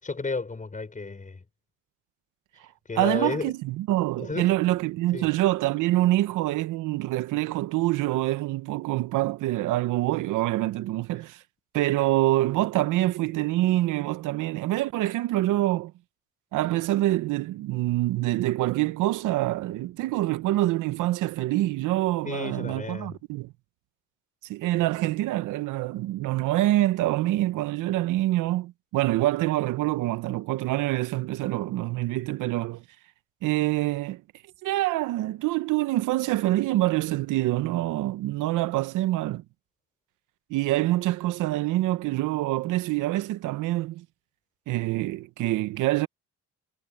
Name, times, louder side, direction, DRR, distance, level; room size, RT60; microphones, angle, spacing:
voice 1, 0.0-1.4 2.9-3.5 4.2-4.5 5.1-5.3 22.2-23.2, left 3 dB, 25° left, 5.7 m, -32 dB
voice 2, 3.0-11.4 11.7-15.9 16.5-23.5 24.5-32.8 33.4-34.2 34.6-39.4 40.5-44.0 44.7-46.1, right 16 dB, 90° right, 0.7 m, -26 dB
cardioid pair, 90°, 30 cm